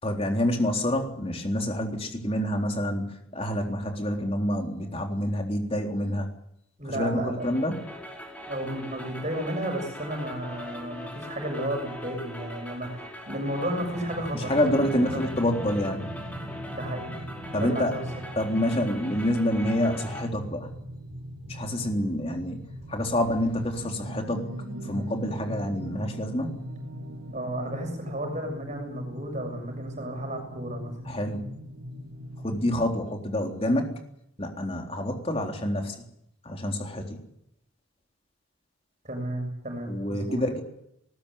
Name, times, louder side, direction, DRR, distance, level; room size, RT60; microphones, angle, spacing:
voice 1, 0.0-3.1 3.3-6.3 6.9-7.9 14.5-16.1 17.5-17.9 18.4-20.7 21.5-22.6 22.9-24.5 24.9-26.5 31.1-31.4 32.4-33.9 34.4-36.0 36.5-37.2 39.9-40.6, left 1 dB, 25° left, 3 dB, 3.7 m, -27 dB
voice 2, 6.8-7.7 8.5-15.3 16.7-17.1 17.5-18.1 27.3-30.9 39.0-40.6, right 1 dB, 35° right, 4 dB, 7.1 m, -33 dB
sound 1, 7.4-20.2, equal, 5° left, 4.7 m, -41 dB
sound 2, 13.6-32.9, equal, 80° right, 3.8 m, -40 dB
20.0 x 19.0 x 10.0 m, 0.78 s
head